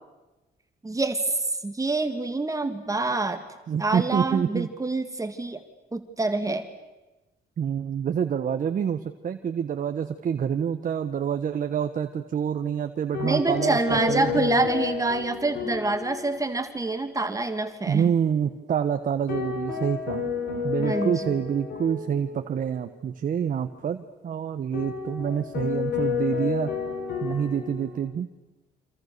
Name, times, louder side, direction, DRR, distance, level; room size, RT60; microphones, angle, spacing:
voice 1, 0.8-1.3 1.6-3.4 3.8-5.6 5.9-6.7 13.2-18.1 20.8-21.3, right 3 dB, 20° right, 7 dB, 1.9 m, -26 dB
voice 2, 3.7-4.7 7.6-14.7 17.9-20.2 20.6-26.7 27.2-28.3, right 8 dB, 55° right, 7 dB, 1.3 m, -27 dB
sound 1, 13.1-16.7 17.0-17.1 19.3-22.6 24.7-28.0, left 7 dB, 85° left, 5.2 m, -31 dB
29.0 x 26.5 x 6.8 m, 1.1 s
cardioid pair, 95°, 17 cm